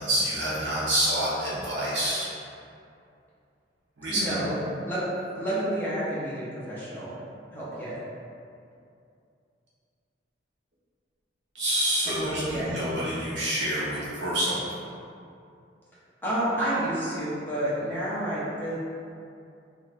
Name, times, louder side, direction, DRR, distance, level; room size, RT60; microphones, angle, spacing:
voice 1, 0.0-2.3 4.0-4.4 11.5-14.7, right 1 dB, 70° right, -8 dB, 0.9 m, -27 dB
voice 2, 4.1-5.0 5.3-7.1 7.5-8.0 12.0-12.9 16.2-18.7, right 1 dB, 10° left, -10 dB, 0.8 m, -30 dB
2.6 x 2.3 x 3.3 m, 2.5 s
head